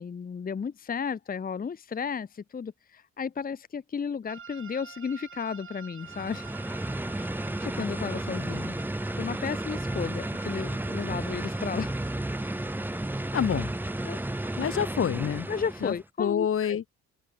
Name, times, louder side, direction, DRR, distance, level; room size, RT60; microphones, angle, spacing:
voice 1, 0.0-6.5 7.6-8.8 9.2-12.0 14.0-14.2 15.5-17.0, left 6 dB, 30° left, 0.9 m, -33 dB
sound 1, 4.3-14.7, right 6 dB, 45° right, 3.8 m, -47 dB
sound 2, 6.0-16.0, right 1 dB, 5° right, 1.2 m, -33 dB
Speech, 7.6-8.4 9.8-10.0 10.3-10.7 11.4-12.2, left 11 dB, 70° left, 6.4 m, -56 dB
voice 2, 13.3-13.7 14.6-15.5 15.8-16.8, left 8 dB, 45° left, 1.2 m, -27 dB
cardioid pair, 90°, 30 cm